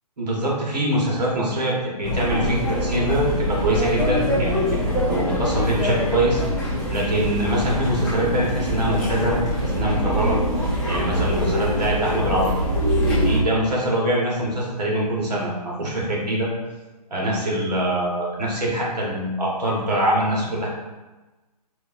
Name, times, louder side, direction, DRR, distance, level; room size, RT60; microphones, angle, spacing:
voice 1, 0.2-4.7 5.1-10.4 10.9-12.5 13.2-16.5 17.1-20.7, right 1 dB, 90° right, -3 dB, 1.4 m, -24 dB
sound 1, 2.0-13.4, equal, ahead, 0.6 m, -23 dB
4.3 x 2.8 x 2.6 m, 1.2 s
hypercardioid pair, 150°, 20 cm